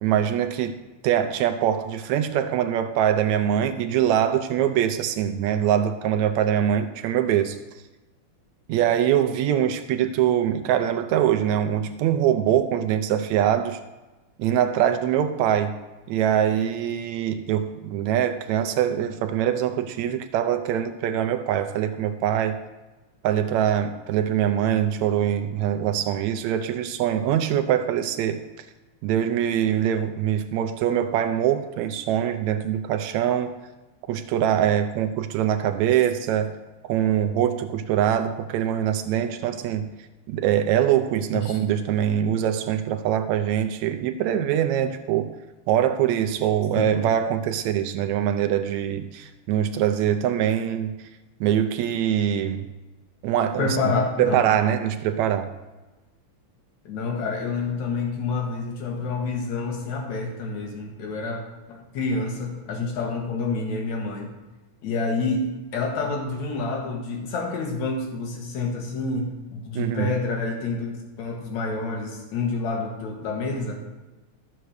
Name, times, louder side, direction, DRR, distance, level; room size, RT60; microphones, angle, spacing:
voice 1, 0.0-0.8 1.0-7.6 8.7-13.8 14.4-15.7 16.1-22.6 23.2-28.4 29.0-33.6 34.1-36.5 36.8-39.9 40.3-45.3 45.7-50.9 51.4-52.7 53.2-53.7 54.2-55.5 69.8-70.1, right 10 dB, 80° right, 8 dB, 1.7 m, -23 dB
voice 2, 53.6-54.4 56.9-61.4 61.7-64.3 64.8-65.4 65.7-70.9 71.2-73.8, left 3 dB, 65° left, 1 dB, 2.8 m, -28 dB
12.5 x 5.9 x 6.4 m, 1.1 s
omnidirectional pair, 3.6 m